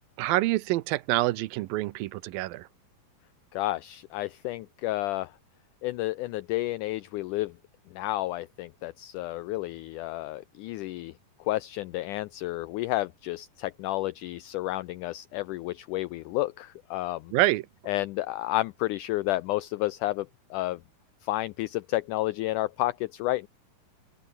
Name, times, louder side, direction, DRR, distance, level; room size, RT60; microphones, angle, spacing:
voice 1, 0.2-2.6 17.3-17.6, right 18 dB, 80° right, 2.4 m, -26 dB
voice 2, 3.5-5.3 5.8-7.5 7.9-11.1 11.5-17.3 17.9-20.8 21.2-23.5, left 17 dB, 85° left, 1.8 m, -31 dB
open air
omnidirectional pair, 4.2 m